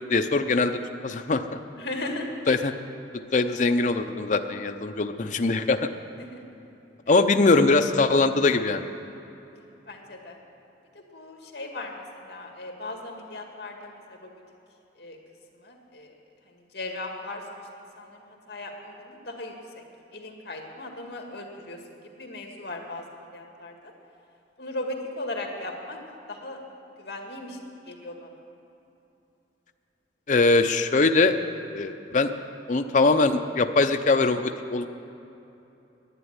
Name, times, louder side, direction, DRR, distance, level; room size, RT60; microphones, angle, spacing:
voice 1, 0.1-1.4 2.5-2.7 3.3-5.9 7.1-8.9 30.3-31.4 31.7-32.3 32.7-35.0, left 3 dB, 40° left, 7 dB, 0.6 m, -22 dB
voice 2, 1.8-2.3 6.2-6.4 9.9-10.4 10.9-14.3 15.0-15.2 15.6-16.2 16.5-19.8 20.1-23.7 24.6-26.0 26.3-26.6 27.0-27.6 27.9-28.3, left 2 dB, 60° left, 2 dB, 2.0 m, -37 dB
11.0 x 9.6 x 9.7 m, 2.9 s
head